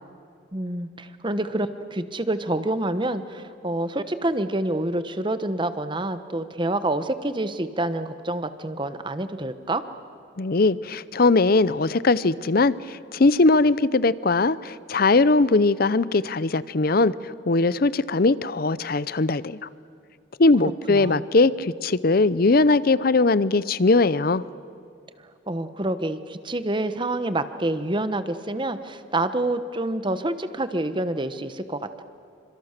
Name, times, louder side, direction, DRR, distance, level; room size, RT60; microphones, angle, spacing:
voice 1, 0.5-9.8 20.9-21.3 25.5-32.0, right 1 dB, 25° right, 11 dB, 1.1 m, -27 dB
voice 2, 10.4-19.7 20.4-24.4, left 3 dB, 50° left, 18 dB, 0.6 m, -20 dB
28.5 x 25.5 x 6.7 m, 2.5 s
head